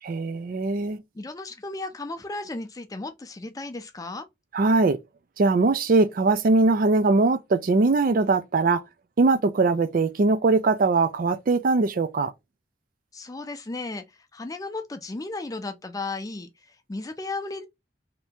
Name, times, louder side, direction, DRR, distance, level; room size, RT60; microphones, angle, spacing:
voice 1, 0.0-1.0 4.5-5.0 5.4-8.8 9.2-12.3, right 3 dB, 50° right, 0.4 m, -21 dB
voice 2, 1.1-4.3 13.1-17.7, left 2 dB, 20° left, 0.5 m, -35 dB
2.9 x 2.7 x 3.4 m
head